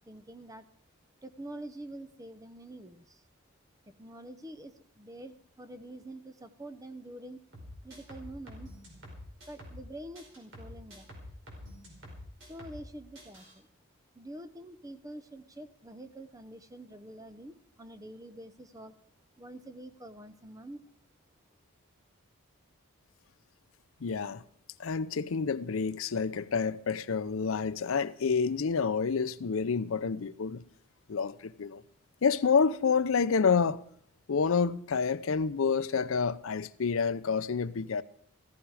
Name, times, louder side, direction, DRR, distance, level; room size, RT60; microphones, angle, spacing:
voice 1, 0.1-0.7 1.2-3.2 4.0-7.4 7.8-8.7 9.5-11.1 12.4-13.7 14.1-18.9 19.4-20.8, right 1 dB, 15° right, 0.7 m, -46 dB
sound 1, 7.5-9.9 10.1-12.9 13.1-13.5, left 1 dB, 60° right, 4.8 m, -47 dB
voice 2, 24.0-24.4 24.8-30.6 31.1-31.8 32.2-33.8 34.3-38.0, left 5 dB, 70° left, 0.5 m, -28 dB
15.0 x 14.5 x 4.8 m
head